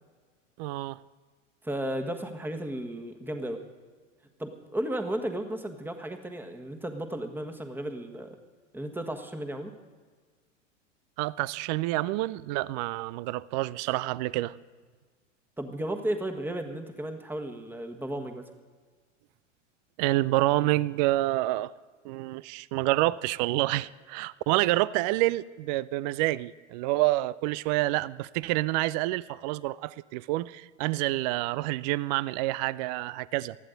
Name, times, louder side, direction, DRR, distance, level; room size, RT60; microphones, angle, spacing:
voice 1, 0.6-1.0 11.2-14.6 20.0-21.7 22.0-33.6, right 18 dB, 35° right, 21 dB, 0.4 m, -28 dB
voice 2, 1.6-3.6 4.4-8.4 8.7-9.7 15.6-18.5, right 1 dB, 5° right, 5 dB, 1.5 m, -34 dB
19.5 x 14.0 x 3.9 m, 1.5 s
figure-of-eight pair, 95°, 38 cm